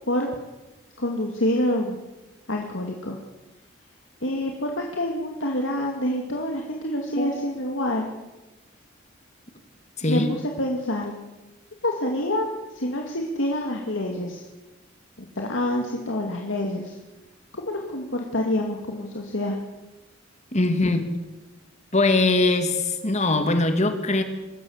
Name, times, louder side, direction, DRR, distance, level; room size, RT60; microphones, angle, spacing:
voice 1, 1.0-2.0 2.5-3.2 4.2-8.1 10.1-11.1 11.8-12.5 12.7-14.4 15.4-17.0 17.5-19.6 20.8-20.9, left 1 dB, 70° left, 1 dB, 2.4 m, -27 dB
voice 2, 10.0-10.3 20.5-21.0 21.9-24.2, left 2 dB, 35° left, 7 dB, 2.4 m, -21 dB
24.0 x 14.0 x 8.1 m, 1.1 s
head